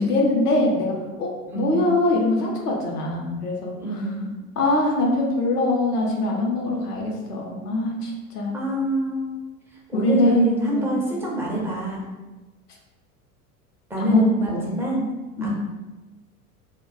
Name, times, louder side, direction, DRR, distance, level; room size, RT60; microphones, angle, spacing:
voice 1, 0.0-3.7 4.6-8.6 9.9-11.1 14.0-14.2 14.5-14.6 15.4-15.5, left 2 dB, 80° left, -1 dB, 0.7 m, -23 dB
voice 2, 1.5-1.9 3.8-4.3 8.5-9.3 9.9-12.1 13.9-15.1 15.4-15.5, equal, 5° right, -4 dB, 0.3 m, -26 dB
2.2 x 2.2 x 3.7 m, 1.2 s
figure-of-eight pair, 80°, 46 cm